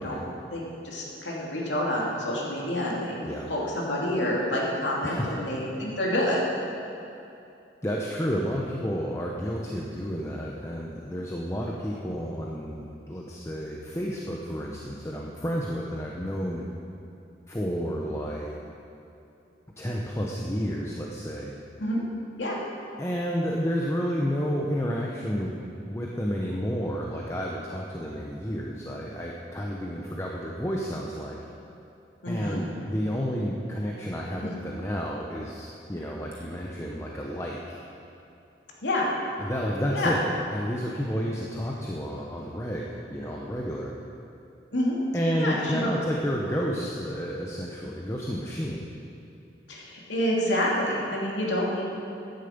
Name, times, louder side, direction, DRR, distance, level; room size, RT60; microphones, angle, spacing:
voice 1, 0.0-3.2 3.5-6.4 21.8-22.0 22.4-22.6 32.2-32.6 34.4-34.5 38.8-39.1 39.9-40.2 44.7-45.0 45.4-45.9 49.7-51.8, left 1 dB, 85° left, -3 dB, 2.9 m, -28 dB
voice 2, 5.0-5.4 7.8-16.6 17.5-18.6 19.8-21.6 23.0-31.4 32.3-37.8 39.4-40.3 40.5-43.9 45.1-48.9, equal, 15° left, -2 dB, 0.8 m, -31 dB
15.0 x 10.5 x 5.2 m, 2.8 s
head